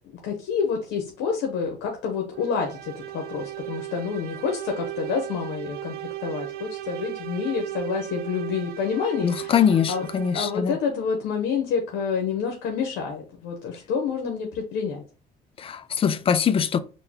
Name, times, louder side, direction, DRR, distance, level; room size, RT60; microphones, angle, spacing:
voice 1, 0.2-9.5 9.9-10.0 10.3-15.0, left 6 dB, 85° left, 0.9 m, -28 dB
sound 1, 2.3-10.7, right 15 dB, 65° right, 0.4 m, -36 dB
voice 2, 9.2-10.8 15.6-16.8, left 8 dB, 35° left, 0.4 m, -22 dB
4.0 x 2.2 x 3.5 m
cardioid pair, 110°, 17 cm